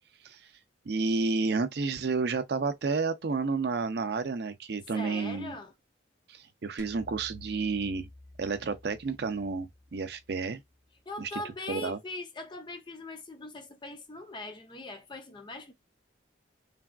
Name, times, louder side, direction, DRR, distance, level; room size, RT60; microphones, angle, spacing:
voice 1, 0.9-5.6 6.3-8.1 8.4-10.6 11.2-11.4 11.7-12.0, right 4 dB, 55° right, 0.4 m, -31 dB
voice 2, 4.9-5.7 11.1-15.7, left 2 dB, 25° left, 0.5 m, -41 dB
sound 1, 6.8-11.2, left 2 dB, 75° left, 1.0 m, -53 dB
3.3 x 2.4 x 2.2 m
head